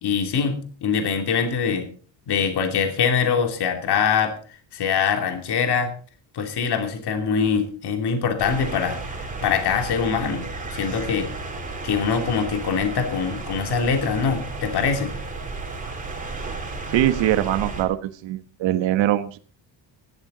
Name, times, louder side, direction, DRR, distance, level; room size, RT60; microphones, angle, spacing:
voice 1, 0.0-1.9 2.3-4.3 4.7-5.9 6.3-10.5 10.7-11.3 11.8-15.1, left 6 dB, 55° left, 6 dB, 2.8 m, -23 dB
sound 1, 8.4-17.8, right 3 dB, 15° right, 3.4 m, -33 dB
voice 2, 16.9-19.4, right 13 dB, 70° right, 10 dB, 1.2 m, -22 dB
16.0 x 12.5 x 3.9 m, 0.39 s
cardioid pair, 140°, 46 cm